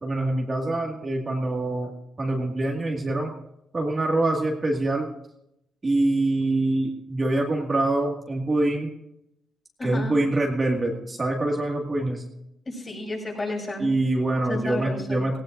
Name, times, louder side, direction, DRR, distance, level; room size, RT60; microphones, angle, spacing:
voice 1, 0.0-1.9 2.2-3.3 3.7-5.1 5.8-8.9 9.8-12.2 13.8-15.4, right 2 dB, 30° right, 0 dB, 2.1 m, -25 dB
voice 2, 9.8-10.2 12.7-13.9 14.5-15.2, left 2 dB, 30° left, -2 dB, 5.8 m, -31 dB
18.0 x 16.5 x 2.6 m, 0.81 s
cardioid pair, 90°, 0 cm